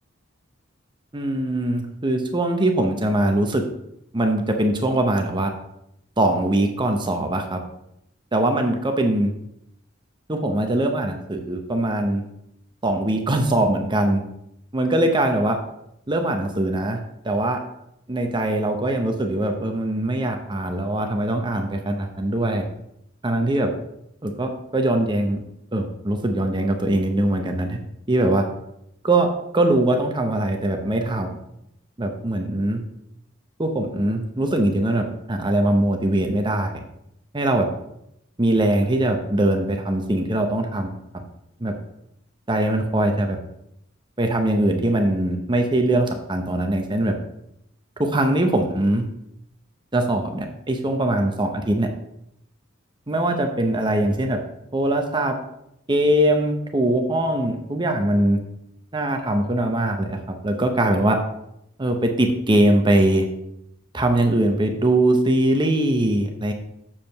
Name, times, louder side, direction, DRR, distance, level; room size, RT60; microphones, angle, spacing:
voice 1, 1.1-3.6 4.1-5.5 6.2-7.6 8.3-9.3 10.3-12.2 12.8-14.2 14.7-15.6 16.1-17.0 17.2-17.6 18.1-22.6 23.2-23.7 24.2-25.4 25.7-27.8 28.1-28.4 29.0-29.3 29.5-31.3 32.0-32.8 33.6-36.8 37.3-37.7 38.4-40.9 41.6-41.8 42.5-43.4 44.2-47.1 48.0-49.0 49.9-51.9 53.1-54.4 54.7-55.4 55.9-58.4 58.9-61.2 61.8-63.3 63.9-66.5, right 1 dB, 25° right, 4 dB, 0.8 m, -21 dB
7.2 x 5.0 x 6.6 m, 0.80 s
head